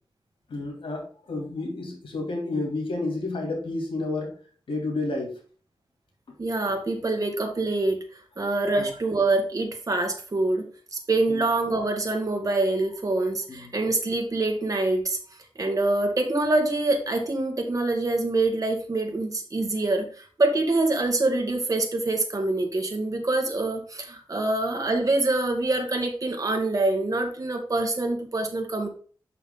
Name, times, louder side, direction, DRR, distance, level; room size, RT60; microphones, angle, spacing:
voice 1, 0.5-4.3 4.7-5.3 8.8-8.9 11.3-11.4 13.5-13.7, left 2 dB, 85° left, 1 dB, 2.6 m, -30 dB
voice 2, 6.4-8.0 8.4-10.7 10.9-15.2 15.6-28.9, right 2 dB, 40° right, 4 dB, 1.7 m, -25 dB
6.2 x 5.8 x 3.7 m, 0.41 s
wide cardioid pair, 80°, 9 cm